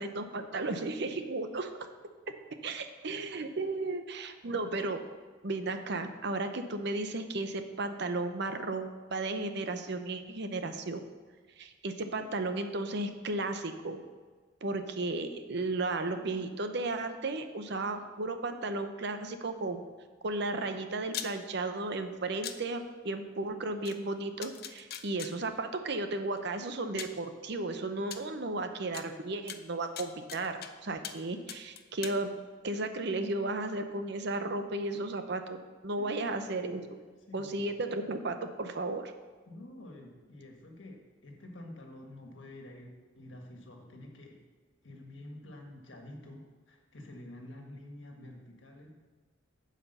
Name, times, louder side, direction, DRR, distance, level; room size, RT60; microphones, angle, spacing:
voice 1, 0.0-1.7 2.6-5.0 5.4-11.0 11.6-14.0 14.6-19.8 20.2-32.3 32.6-35.6 35.8-36.8 37.3-39.1, right 2 dB, 60° right, 8 dB, 0.7 m, -34 dB
sound 1, 21.1-21.3 22.4-22.6 23.8-23.9 24.4-25.3 26.4-26.5 27.0-27.2 28.1-28.2 28.9-29.0 29.5-30.7 31.0-31.2 31.5-32.2, left 10 dB, 55° left, 0.6 m, -40 dB
voice 2, 37.3-37.6 39.5-44.4 44.8-49.0, left 1 dB, 70° left, 2 dB, 1.6 m, -48 dB
9.7 x 5.1 x 6.6 m, 1.4 s
head